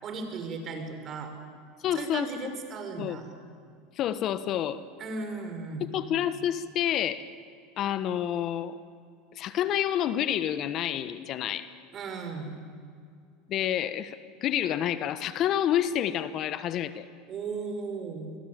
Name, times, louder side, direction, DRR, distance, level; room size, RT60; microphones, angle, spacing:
voice 1, 0.0-1.3 1.9-3.3 5.0-6.0 11.9-12.6 17.3-18.4, right 4 dB, 40° right, 6 dB, 5.9 m, -36 dB
voice 2, 1.8-2.3 3.0-3.2 4.0-4.8 5.8-7.3 7.8-8.8 9.4-11.7 13.5-17.1, left 10 dB, 50° left, 13 dB, 1.3 m, -28 dB
27.0 x 21.5 x 8.8 m, 2.3 s
hypercardioid pair, 95°, 0 cm